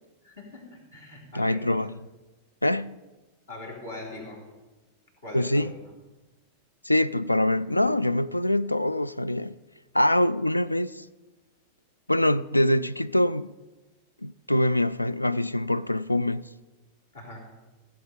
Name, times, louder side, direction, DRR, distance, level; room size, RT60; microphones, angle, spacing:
voice 1, 0.2-1.8 3.5-4.5 5.2-5.9 17.1-17.5, left 2 dB, 70° left, 3.6 m, -41 dB
voice 2, 1.3-1.9 2.6-3.0 5.3-5.7 6.9-9.6 9.9-11.0 12.1-13.5 14.2-16.5, left 1 dB, 85° left, 0.3 m, -24 dB
16.0 x 7.6 x 5.2 m
figure-of-eight pair, 90°, 0 cm